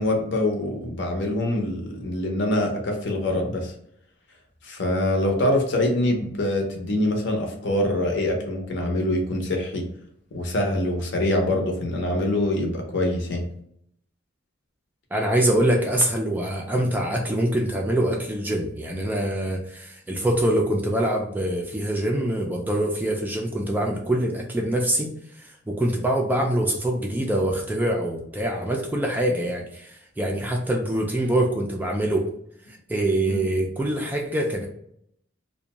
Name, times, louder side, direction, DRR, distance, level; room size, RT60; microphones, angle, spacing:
voice 1, 0.0-3.7 4.6-9.9 10.3-13.4 33.3-33.4, left 1 dB, 60° left, 2 dB, 0.7 m, -24 dB
voice 2, 15.1-32.3 32.7-34.7, right 1 dB, 10° right, 1 dB, 0.3 m, -24 dB
2.5 x 2.2 x 2.9 m, 0.71 s
head